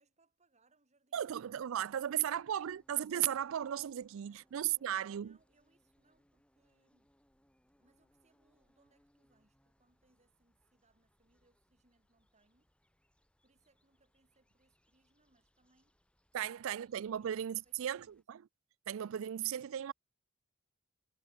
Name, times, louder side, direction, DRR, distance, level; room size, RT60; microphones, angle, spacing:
voice 1, 0.0-1.7 4.0-7.1 7.8-12.7 13.4-16.0 17.2-17.4 17.6-18.2, right 2 dB, 35° right, 6.1 m, -74 dB
voice 2, 1.1-5.4 16.3-18.4 18.9-19.9, right 11 dB, 65° right, 0.4 m, -36 dB
sound 1, 2.3-18.2, equal, 5° left, 4.0 m, -75 dB
head